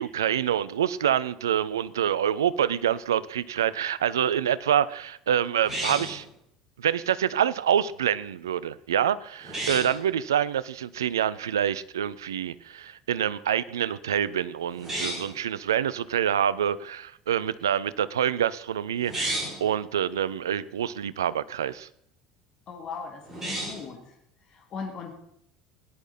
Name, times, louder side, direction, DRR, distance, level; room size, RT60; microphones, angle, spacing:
voice 1, 0.0-6.2 6.8-21.9, right 9 dB, 70° right, 18 dB, 0.5 m, -26 dB
sound 1, 5.6-6.3 9.4-10.0 14.7-15.4 19.0-19.6 23.2-23.9, right 1 dB, 20° right, 6.8 m, -32 dB
voice 2, 22.7-24.2 24.5-25.1, left 5 dB, 40° left, 2 dB, 2.3 m, -38 dB
17.5 x 10.5 x 4.2 m, 0.72 s
figure-of-eight pair, 65°, 2 cm